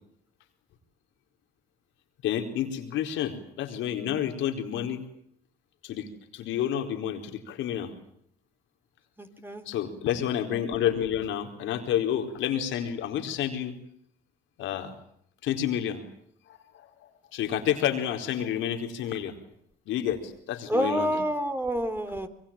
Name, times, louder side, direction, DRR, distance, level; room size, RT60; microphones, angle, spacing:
voice 1, 2.2-5.0 5.8-6.1 6.3-7.9 9.7-13.7 14.6-14.9 15.4-16.0 17.3-19.3 19.9-21.1, left 10 dB, 85° left, 6 dB, 4.5 m, -29 dB
voice 2, 9.2-9.6 20.7-22.3, right 1 dB, 10° right, 7 dB, 4.4 m, -28 dB
26.0 x 23.5 x 9.0 m, 0.69 s
supercardioid pair, 65°, 19 cm